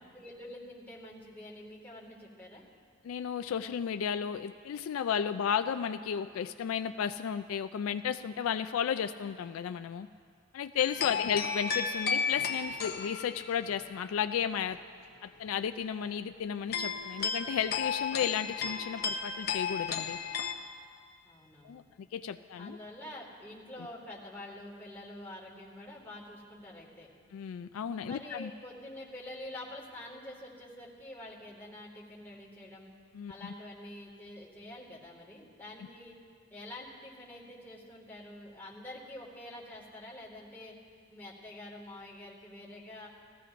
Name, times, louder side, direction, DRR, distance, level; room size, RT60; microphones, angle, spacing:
voice 1, 0.1-2.6 11.0-11.3 21.3-21.8 22.6-27.1 28.0-32.9 33.3-36.2 36.5-40.7 41.1-43.1, left 1 dB, 10° left, -5 dB, 1.8 m, -47 dB
voice 2, 3.0-10.1 10.5-14.8 15.2-20.2 21.6-21.8 22.1-22.8 27.3-28.5 33.1-33.5, left 8 dB, 75° left, 9 dB, 0.3 m, -33 dB
sound 1, 10.8-14.4 14.7-14.8 15.5-15.7 16.0-16.1 16.7-20.5, left 6 dB, 45° left, 0.7 m, -34 dB
19.0 x 14.0 x 2.5 m, 2.2 s
head